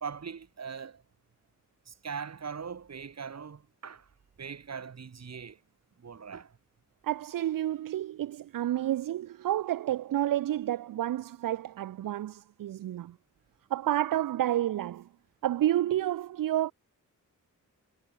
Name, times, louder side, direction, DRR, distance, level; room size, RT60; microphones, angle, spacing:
voice 1, 0.0-1.0 1.9-4.1 4.4-5.6 6.0-6.6, right 6 dB, 55° right, 1.4 m, -41 dB
voice 2, 7.0-13.2 13.7-15.1 15.4-16.7, right 13 dB, 80° right, 0.5 m, -30 dB
cardioid pair, 75°, 33 cm